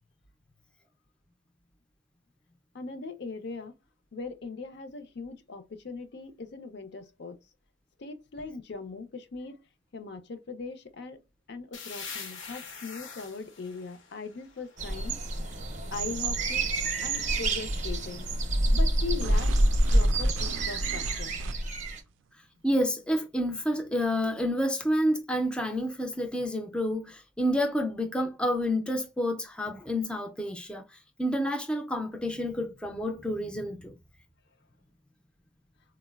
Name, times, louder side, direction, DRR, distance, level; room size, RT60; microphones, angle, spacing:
voice 1, 2.7-3.7 4.1-7.4 8.0-9.6 9.9-11.2 11.5-15.6 15.9-16.7 17.0-18.3 18.7-19.5 19.9-21.4, left 4 dB, 60° left, 0.5 m, -40 dB
sound 1, 11.7-15.3, left 5 dB, 80° left, 0.9 m, -44 dB
sound 2, 14.8-22.0, right 1 dB, 40° right, 0.6 m, -27 dB
sound 3, 19.2-21.9, right 6 dB, 80° right, 0.3 m, -41 dB
voice 2, 22.6-34.0, equal, 5° left, 0.4 m, -29 dB
3.8 x 2.0 x 2.2 m
head